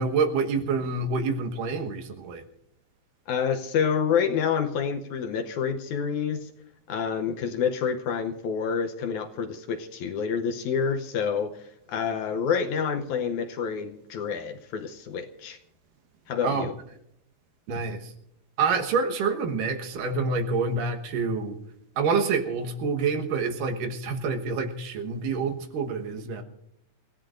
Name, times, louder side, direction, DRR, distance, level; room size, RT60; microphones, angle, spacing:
voice 1, 0.0-2.4 16.4-16.7 17.7-18.1 18.6-21.6 22.0-26.4, right 4 dB, 75° right, 5 dB, 2.9 m, -27 dB
voice 2, 3.3-6.5 6.9-15.6 16.3-16.7, left 6 dB, 75° left, 6 dB, 1.9 m, -28 dB
28.0 x 15.5 x 2.6 m, 0.77 s
omnidirectional pair, 4.0 m